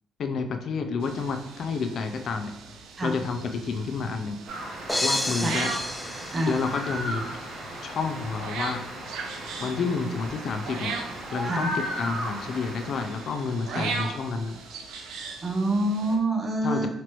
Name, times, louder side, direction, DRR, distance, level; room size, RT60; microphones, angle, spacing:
voice 1, 0.2-2.5 3.0-4.4 5.0-5.7 6.5-7.2 7.8-8.9 9.6-11.0 11.3-14.6 16.6-16.9, left 4 dB, 60° left, 7 dB, 0.4 m, -29 dB
sound 1, 1.0-16.2, right 4 dB, 90° right, 0.5 m, -39 dB
sound 2, 4.5-13.6, equal, 65° right, 1.2 m, -36 dB
sound 3, 4.9-7.1, left 1 dB, 5° left, 0.5 m, -30 dB
voice 2, 15.4-16.9, right 1 dB, 35° right, 3 dB, 0.8 m, -26 dB
5.0 x 3.1 x 3.0 m, 0.80 s
cardioid pair, 90°, 0 cm